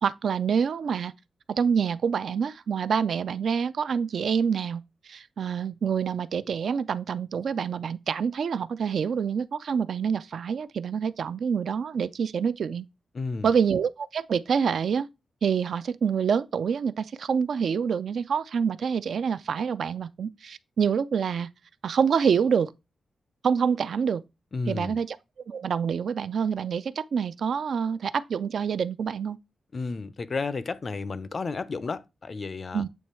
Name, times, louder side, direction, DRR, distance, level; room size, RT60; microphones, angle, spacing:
voice 1, 0.0-1.1 1.5-12.9 13.4-15.1 15.4-21.5 21.8-22.7 23.4-24.2 24.7-25.2 25.5-29.4 32.7-32.9, right 6 dB, 60° right, 0.3 m, -26 dB
voice 2, 13.1-13.5 24.5-25.0 29.7-32.8, left 4 dB, 35° left, 0.4 m, -32 dB
8.3 x 3.1 x 4.3 m
wide cardioid pair, 170°, 0 cm